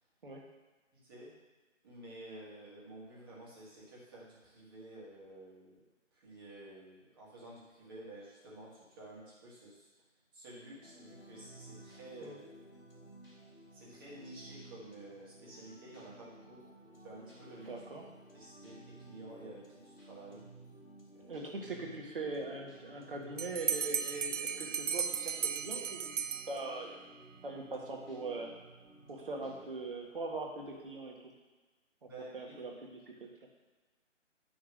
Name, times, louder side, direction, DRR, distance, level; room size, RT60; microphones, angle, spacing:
voice 1, 0.9-1.3 1.8-5.8 6.1-9.9 10.3-12.4 13.7-16.6 17.0-17.8 18.3-20.4 21.1-21.5 32.0-32.6, right 1 dB, 20° right, -7 dB, 1.8 m, -51 dB
sound 1, 10.8-29.7, right 1 dB, 50° left, 3.0 m, -55 dB
voice 2, 17.7-18.0 21.3-27.0 27.4-28.5 29.1-31.3 32.3-33.3, right 3 dB, 45° right, 0 dB, 1.6 m, -41 dB
Bell, 23.4-27.0, right 7 dB, 75° right, 0.5 m, -36 dB
10.5 x 3.6 x 6.2 m, 1.3 s
figure-of-eight pair, 155°, 38 cm